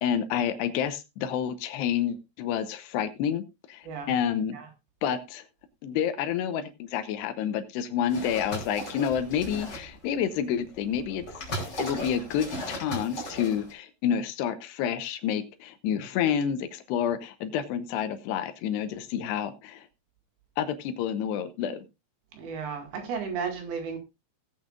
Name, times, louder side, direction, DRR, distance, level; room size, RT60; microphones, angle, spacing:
voice 1, 0.0-3.4 3.7-4.6 5.0-5.4 5.8-11.2 11.8-19.9 20.6-21.8, left 8 dB, 80° left, 2.9 m, -29 dB
sound 1, 8.1-10.0 10.7-13.7, equal, 25° left, 3.6 m, -37 dB
voice 2, 22.3-24.0, right 6 dB, 65° right, 3.9 m, -34 dB
18.0 x 8.5 x 2.5 m
omnidirectional pair, 5.0 m